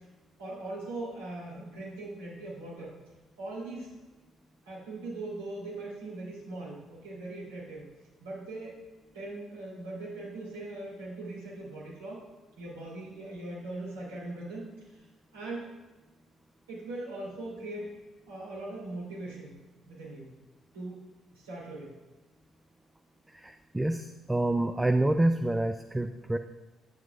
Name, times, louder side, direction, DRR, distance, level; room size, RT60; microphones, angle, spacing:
voice 1, 0.4-3.0 3.4-3.9 4.6-7.9 8.2-8.8 9.1-12.2 12.6-15.1 15.3-15.7 16.7-17.9 18.2-19.6 19.8-20.3 20.7-21.0 21.3-21.9, right 2 dB, 75° right, -7 dB, 2.8 m, -40 dB
voice 2, 23.3-26.4, right 1 dB, 10° right, 8 dB, 0.4 m, -27 dB
10.5 x 8.9 x 2.4 m, 1.2 s
figure-of-eight pair, 45°, 0 cm